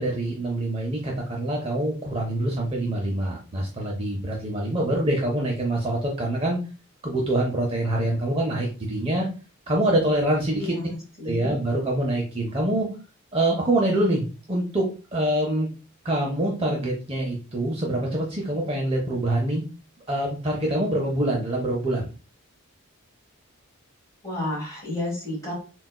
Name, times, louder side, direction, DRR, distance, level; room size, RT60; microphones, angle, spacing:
voice 1, 0.0-6.6 7.0-9.3 9.7-10.7 11.2-12.9 13.3-14.9 15.1-15.7 16.0-19.6 20.1-22.1, right 1 dB, 25° right, -1 dB, 0.5 m, -25 dB
voice 2, 10.5-11.6 24.2-25.5, left 1 dB, 15° left, -5 dB, 1.4 m, -31 dB
3.9 x 2.2 x 2.2 m, 0.34 s
head